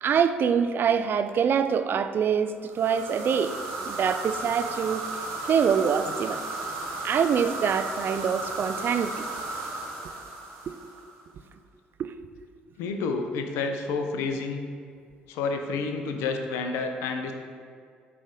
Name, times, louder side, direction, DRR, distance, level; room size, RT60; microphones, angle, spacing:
voice 1, 0.0-3.5 3.9-5.0 5.4-6.4 7.0-9.1 10.7-10.8 12.0-12.1, right 7 dB, 45° right, 10 dB, 0.4 m, -25 dB
sound 1, 2.7-11.2, right 2 dB, 65° right, 0.9 m, -35 dB
voice 2, 12.8-14.7 15.3-17.3, left 4 dB, 65° left, 5 dB, 0.6 m, -29 dB
8.7 x 3.3 x 3.9 m, 2.2 s
figure-of-eight pair, 50°, 5 cm